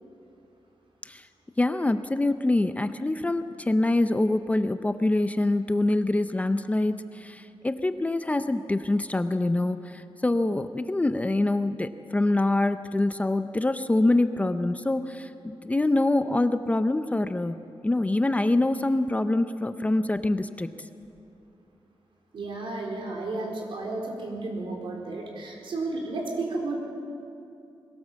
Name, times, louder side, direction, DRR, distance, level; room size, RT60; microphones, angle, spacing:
voice 1, 1.6-20.7, left 2 dB, 15° left, 10 dB, 0.6 m, -25 dB
voice 2, 22.3-26.8, right 2 dB, 70° right, -1 dB, 4.2 m, -32 dB
21.5 x 17.5 x 7.4 m, 2.6 s
wide cardioid pair, 155°, 9 cm